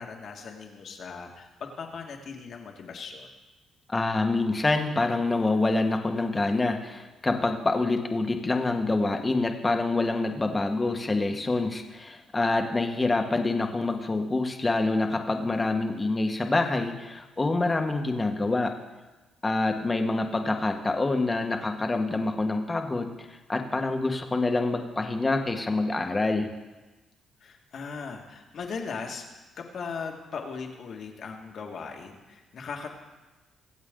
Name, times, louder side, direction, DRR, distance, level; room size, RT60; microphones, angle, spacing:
voice 1, 0.0-3.3 27.4-29.3 29.6-32.9, left 5 dB, 60° left, 2 dB, 2.0 m, -38 dB
voice 2, 3.9-18.7 19.4-26.5, left 2 dB, 20° left, 4 dB, 1.5 m, -26 dB
24.0 x 8.1 x 3.9 m, 1.2 s
cardioid pair, 90°, 0 cm